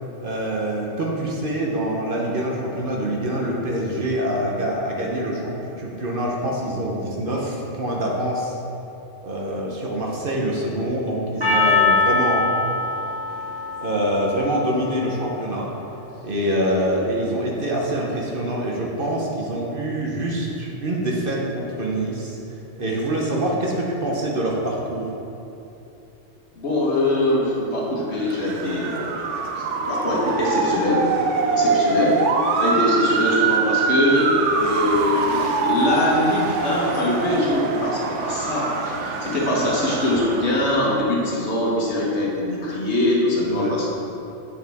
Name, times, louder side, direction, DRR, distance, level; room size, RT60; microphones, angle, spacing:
voice 1, 0.2-8.5 9.2-12.5 13.8-15.8 16.2-25.1 43.4-43.7, right 1 dB, 50° right, -3 dB, 1.0 m, -25 dB
Percussion, 11.4-15.7, left 3 dB, 20° right, 1.2 m, -23 dB
voice 2, 26.6-29.3 29.6-31.1 31.5-32.2 32.6-43.9, left 1 dB, 60° left, -4 dB, 1.6 m, -22 dB
Motor vehicle (road) / Siren, 28.2-40.9, right 4 dB, 75° right, 0.9 m, -24 dB
7.5 x 6.4 x 3.5 m, 2.8 s
omnidirectional pair, 1.3 m